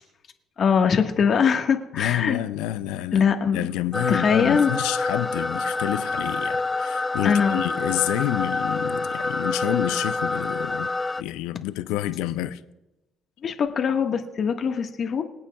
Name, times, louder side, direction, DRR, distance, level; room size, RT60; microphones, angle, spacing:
voice 1, 0.6-2.4 3.1-3.6 4.1-4.7 7.2-7.6 13.4-15.2, left 6 dB, 55° left, 1.5 m, -22 dB
voice 2, 1.9-10.9 11.2-12.6, left 14 dB, 85° left, 0.6 m, -28 dB
sound 1, 3.9-11.2, left 3 dB, 15° left, 0.4 m, -27 dB
25.5 x 8.7 x 2.3 m
supercardioid pair, 80°, 0 cm